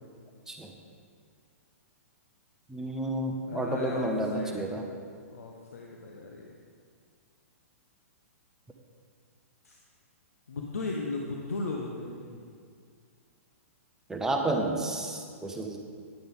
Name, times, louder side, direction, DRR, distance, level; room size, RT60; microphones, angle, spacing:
voice 1, 2.7-4.8 14.1-15.8, right 1 dB, 5° right, 2 dB, 0.9 m, -31 dB
voice 2, 3.5-4.6 5.3-6.5 9.6-9.8 10.5-12.4, left 3 dB, 75° left, 0 dB, 1.0 m, -36 dB
10.5 x 9.4 x 3.7 m, 2.1 s
hypercardioid pair, 120°, 8 cm